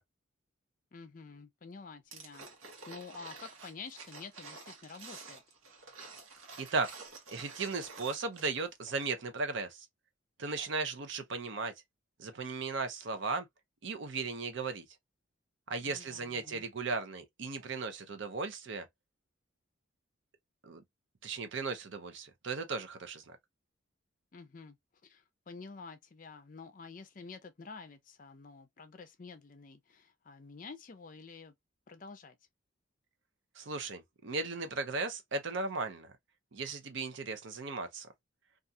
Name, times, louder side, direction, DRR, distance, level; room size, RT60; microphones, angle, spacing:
voice 1, 0.9-2.5 2.9-5.4 15.8-16.7 24.3-24.8 25.0-31.6 31.9-32.4, left 4 dB, 40° left, 0.5 m, -49 dB
sound 1, 2.1-8.7 9.0-9.1, right 4 dB, 90° right, 1.0 m, -50 dB
voice 2, 6.6-6.9 7.3-9.9 10.4-11.7 12.2-13.5 13.8-14.8 15.7-18.9 20.6-20.8 21.2-23.2 33.6-36.1 36.5-38.1, right 4 dB, 60° right, 0.5 m, -36 dB
2.4 x 2.3 x 2.6 m
head